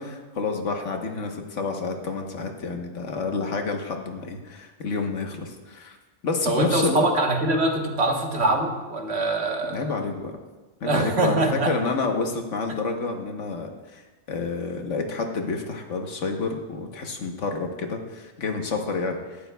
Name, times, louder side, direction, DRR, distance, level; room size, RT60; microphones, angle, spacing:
voice 1, 0.0-6.0 6.2-7.1 9.7-10.4 10.8-14.0 14.3-19.4, left 4 dB, 75° left, 3 dB, 1.5 m, -29 dB
voice 2, 6.4-9.9 10.8-11.8, right 2 dB, 60° right, 2 dB, 1.6 m, -23 dB
18.0 x 12.0 x 2.3 m, 1.3 s
omnidirectional pair, 1.2 m